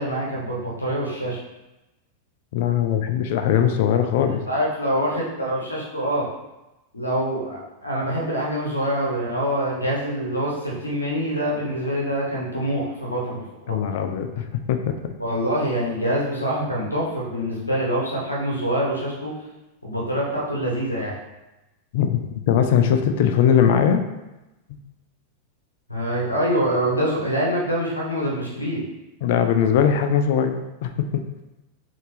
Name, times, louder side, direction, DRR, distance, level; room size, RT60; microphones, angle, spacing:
voice 1, 0.0-1.4 4.3-6.3 6.9-13.8 15.2-19.3 19.8-21.1 25.9-28.8, equal, 80° left, -4 dB, 1.0 m, -25 dB
voice 2, 2.5-4.4 13.7-14.9 21.9-24.0 24.7-24.8 29.2-31.1, left 8 dB, 50° left, 7 dB, 0.4 m, -20 dB
4.3 x 3.7 x 3.3 m, 0.99 s
figure-of-eight pair, 90°, 0 cm